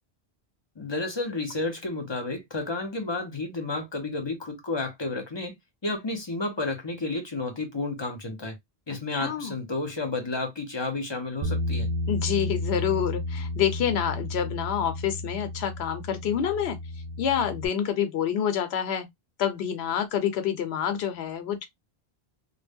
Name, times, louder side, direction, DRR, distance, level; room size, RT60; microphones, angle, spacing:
voice 1, 0.8-5.6 5.8-8.5 8.9-11.9, left 3 dB, 30° left, 0.6 m, -31 dB
voice 2, 9.1-9.5 12.1-16.8 17.2-19.1 19.4-21.7, left 9 dB, 80° left, 0.8 m, -27 dB
Bass guitar, 11.4-17.7, left 1 dB, 50° right, 0.5 m, -32 dB
2.1 x 2.0 x 3.4 m
omnidirectional pair, 1.1 m